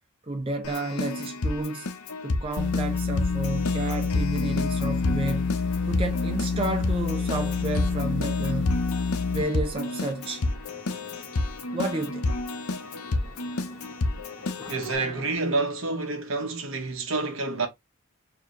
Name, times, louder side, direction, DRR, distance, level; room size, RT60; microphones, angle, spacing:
voice 1, 0.2-1.9 2.2-5.5 5.9-8.8 9.3-10.5 11.7-12.3, right 2 dB, 25° right, 0.5 m, -31 dB
Keyboard (musical), 0.6-15.0, left 2 dB, 80° left, 0.8 m, -30 dB
sound 1, 2.6-9.4, left 5 dB, 50° left, 0.4 m, -27 dB
sound 2, 4.8-15.3, equal, 5° right, 1.7 m, -49 dB
voice 2, 14.7-17.7, right 3 dB, 60° right, 1.1 m, -28 dB
4.7 x 2.9 x 3.0 m
head